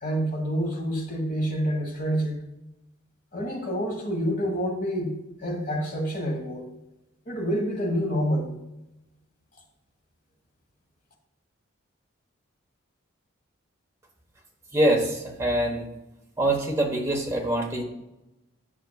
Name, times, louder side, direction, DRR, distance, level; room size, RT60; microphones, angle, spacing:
voice 1, 0.0-2.5 3.3-5.1 5.4-6.7 7.3-8.5, equal, 40° left, 1 dB, 1.5 m, -27 dB
voice 2, 14.7-15.8 16.4-17.8, right 1 dB, 15° right, 0 dB, 1.1 m, -24 dB
11.0 x 5.6 x 2.3 m, 0.94 s
head